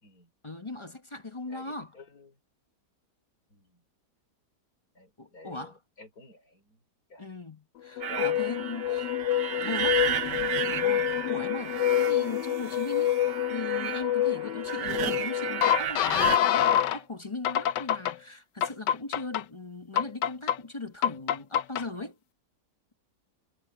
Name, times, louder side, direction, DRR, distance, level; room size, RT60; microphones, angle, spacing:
voice 1, 0.4-2.0 5.2-5.8 7.2-9.1 9.6-22.2, left 3 dB, 20° left, 0.9 m, -39 dB
voice 2, 1.5-2.3 3.5-3.8 5.0-6.8 7.1-7.3 8.1-9.1, left 2 dB, 60° left, 5.8 m, -48 dB
sound 1, 8.0-17.0 17.4-18.1 18.6-19.4 20.0-20.6 21.0-21.8, left 11 dB, 85° left, 1.4 m, -27 dB
sound 2, 8.0-16.4, right 9 dB, 85° right, 1.5 m, -33 dB
omnidirectional pair, 1.8 m